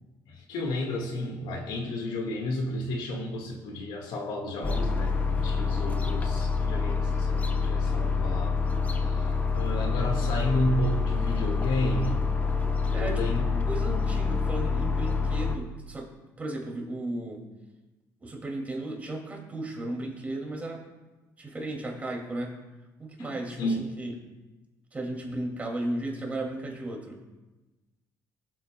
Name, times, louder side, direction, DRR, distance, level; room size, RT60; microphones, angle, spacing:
voice 1, 0.3-8.6 8.9-9.3 9.5-12.3 13.0-13.7 23.6-23.8, left 1 dB, 75° left, 3 dB, 1.7 m, -32 dB
sound 1, 4.6-15.6, left 4 dB, 20° left, 0.8 m, -27 dB
voice 2, 12.9-13.4 13.7-16.1 16.4-17.5 18.2-20.8 21.4-22.6 23.0-24.2 24.9-27.2, right 1 dB, 20° right, 0 dB, 2.3 m, -35 dB
20.5 x 8.4 x 2.2 m, 1.1 s
cardioid pair, 115°, 8 cm